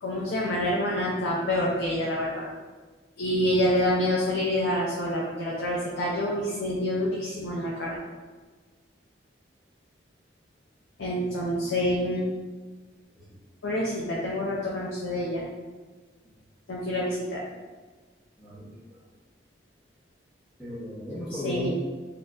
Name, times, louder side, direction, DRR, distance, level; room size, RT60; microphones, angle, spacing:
voice 1, 0.0-2.5 3.2-8.0 11.0-12.3 13.6-15.5 16.7-17.4 21.4-21.7, left 1 dB, 90° left, -5 dB, 0.6 m, -27 dB
voice 2, 18.4-18.7 20.6-21.7, left 1 dB, 5° right, -13 dB, 0.8 m, -35 dB
4.2 x 2.6 x 2.4 m, 1.4 s
head